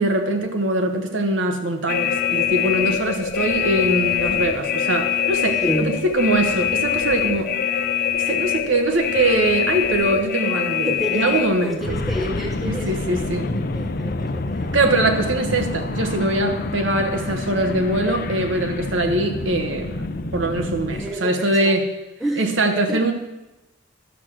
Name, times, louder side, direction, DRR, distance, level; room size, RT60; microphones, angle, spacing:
voice 1, 0.0-7.5 8.1-11.8 12.6-13.5 14.7-20.1 20.3-21.8 22.4-23.1, right 2 dB, 90° right, 5 dB, 1.3 m, -22 dB
sound 1, 1.9-21.1, left 6 dB, 50° left, 0.6 m, -25 dB
voice 2, 5.6-6.0 10.9-14.7 20.9-21.8 22.2-22.5 22.9-23.1, right 1 dB, ahead, -2 dB, 0.9 m, -29 dB
12.0 x 6.3 x 6.3 m, 0.99 s
head